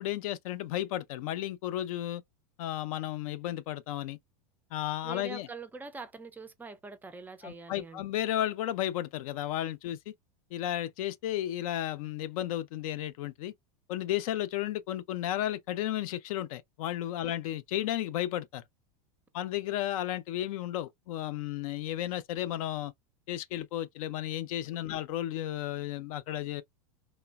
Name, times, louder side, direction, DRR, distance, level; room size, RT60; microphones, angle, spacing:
voice 1, 0.0-2.2 2.6-4.2 4.7-5.5 7.4-10.1 10.5-13.5 13.9-18.6 19.3-22.9 23.3-26.6, left 13 dB, 70° left, 0.5 m, -33 dB
voice 2, 5.0-8.0 24.9-25.0, right 4 dB, 10° right, 0.4 m, -44 dB
3.1 x 2.1 x 2.2 m
supercardioid pair, 130°, 19 cm